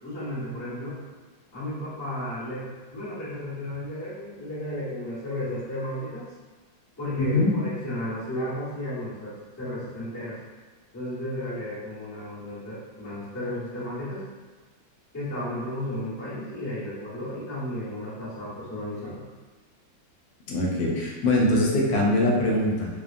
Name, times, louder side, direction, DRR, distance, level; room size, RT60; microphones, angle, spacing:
voice 1, 0.0-1.0 1.5-6.3 7.0-10.4 10.9-14.2 15.1-19.2, left 1 dB, 15° left, -12 dB, 0.7 m, -33 dB
voice 2, 7.2-7.5 20.5-22.9, left 1 dB, 80° left, -3 dB, 1.2 m, -22 dB
3.0 x 2.1 x 2.4 m, 1.3 s
omnidirectional pair, 2.0 m